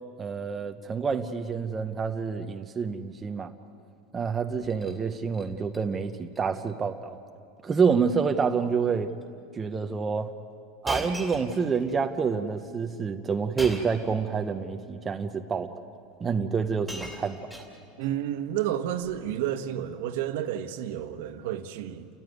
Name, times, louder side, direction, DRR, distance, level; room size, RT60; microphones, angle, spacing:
voice 1, 0.2-3.5 4.1-7.2 7.6-9.1 9.5-10.3 10.8-15.7 16.2-17.5, right 5 dB, 15° right, 0.7 m, -28 dB
Shatter, 4.5-5.0 5.3-5.8 6.1-6.4 6.7-6.8 7.6-7.9 8.2-8.5 9.2-9.3 10.9-12.0 13.6-14.1 15.1-15.2 16.2-16.3 16.6-18.1 19.0-19.3, equal, ahead, 2.5 m, -39 dB
voice 2, 18.0-22.1, right 11 dB, 70° right, 1.3 m, -31 dB
30.0 x 14.5 x 9.4 m
supercardioid pair, 165°, 0 cm